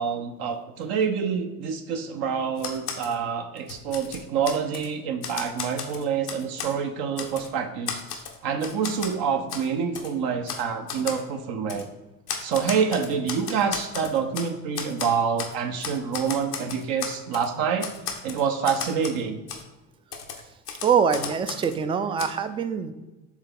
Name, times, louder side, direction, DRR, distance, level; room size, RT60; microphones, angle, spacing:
voice 1, 0.0-11.9 12.4-17.9 18.2-19.4, right 6 dB, 55° right, 6 dB, 0.7 m, -27 dB
Typewriter, 2.6-3.1 3.6-4.9 5.2-6.7 7.2-7.5 7.9-9.1 9.5-9.7 9.9-10.1 10.5-10.6 10.9-11.2 11.7-11.8 12.3-14.5 14.7-15.5 15.8-17.5 17.8-19.2 19.5-19.6 20.1-21.8 22.2-22.3, left 6 dB, 90° left, 0.8 m, -34 dB
voice 2, 20.8-22.9, right 6 dB, 15° right, 10 dB, 0.3 m, -24 dB
7.3 x 3.6 x 3.7 m, 1.1 s
figure-of-eight pair, 60°, 46 cm